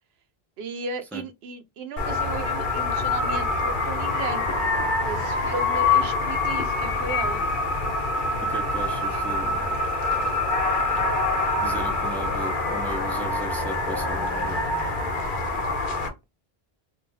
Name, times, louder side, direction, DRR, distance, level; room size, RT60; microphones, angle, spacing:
voice 1, 0.6-4.4 5.0-7.5, right 3 dB, 80° right, 0.9 m, -35 dB
sound 1, 2.0-16.1, left 2 dB, 55° left, 1.0 m, -25 dB
voice 2, 8.5-9.8 11.6-14.6, right 1 dB, ahead, 0.7 m, -37 dB
2.7 x 2.5 x 3.7 m
omnidirectional pair, 1.0 m